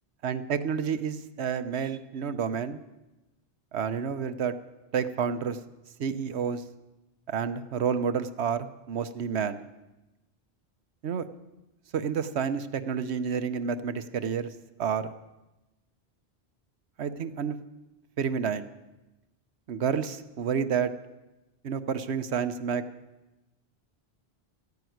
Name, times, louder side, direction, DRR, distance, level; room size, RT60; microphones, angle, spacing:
voice 1, 0.2-2.8 3.7-4.5 4.9-5.6 6.0-6.6 7.3-9.6 11.0-11.3 11.9-14.5 14.8-15.1 17.0-17.6 18.2-18.7 19.7-20.9 21.6-22.8, right 7 dB, 85° right, 12 dB, 1.1 m, -29 dB
14.0 x 11.0 x 9.3 m, 1.0 s
omnidirectional pair, 1.1 m